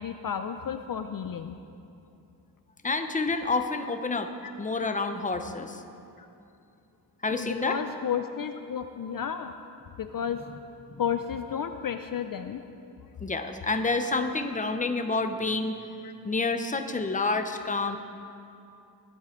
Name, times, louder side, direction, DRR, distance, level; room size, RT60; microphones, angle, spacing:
voice 1, 0.0-1.6 6.2-6.3 7.3-9.5 10.0-10.4 11.0-12.6 16.0-16.1, left 8 dB, 55° left, 8 dB, 0.5 m, -32 dB
voice 2, 2.8-4.3 4.6-5.8 7.2-7.8 10.9-11.0 13.2-15.8 16.2-18.0, left 3 dB, 20° left, 7 dB, 0.7 m, -28 dB
21.0 x 7.9 x 3.8 m, 2.6 s
wide cardioid pair, 95°, 41 cm